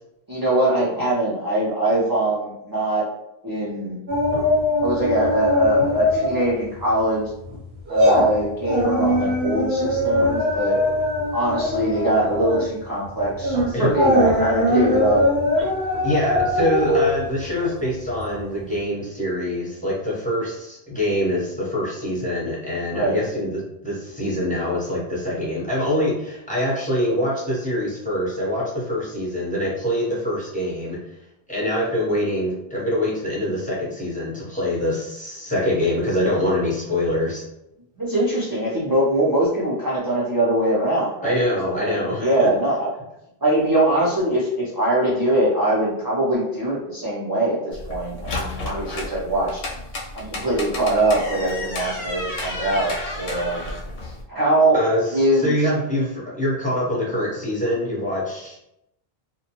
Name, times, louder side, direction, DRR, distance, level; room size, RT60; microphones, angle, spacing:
voice 1, 0.3-3.0 3.4-4.0 4.8-7.3 7.9-10.8 11.3-15.2 22.9-23.2 38.0-41.4 41.7-42.9 43.4-49.6 50.1-53.7 54.0-54.8 55.1-55.5, right 1 dB, 30° right, -7 dB, 0.4 m, -22 dB
sound 1, 4.1-6.5 6.8-7.0 7.4-18.4 18.7-18.8, left 1 dB, 85° right, 1.1 m, -21 dB
voice 2, 16.0-31.0 31.5-37.4 41.2-42.5 54.7-55.1 55.3-58.6, left 1 dB, 10° left, -6 dB, 0.7 m, -24 dB
sound 2, 47.7-54.2, left 2 dB, 55° left, 0.7 m, -32 dB
2.6 x 2.1 x 2.9 m, 0.83 s
omnidirectional pair, 1.0 m